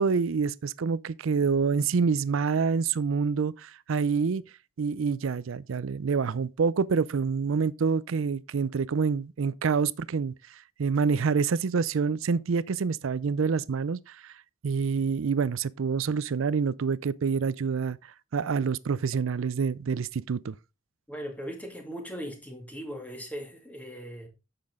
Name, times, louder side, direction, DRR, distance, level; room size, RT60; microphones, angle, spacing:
voice 1, 0.0-4.4 4.8-10.3 10.8-14.2 14.6-18.0 18.3-20.5, right 5 dB, 80° right, 0.5 m, -27 dB
voice 2, 21.1-24.3, equal, 10° left, 2.1 m, -39 dB
9.5 x 6.9 x 3.6 m
head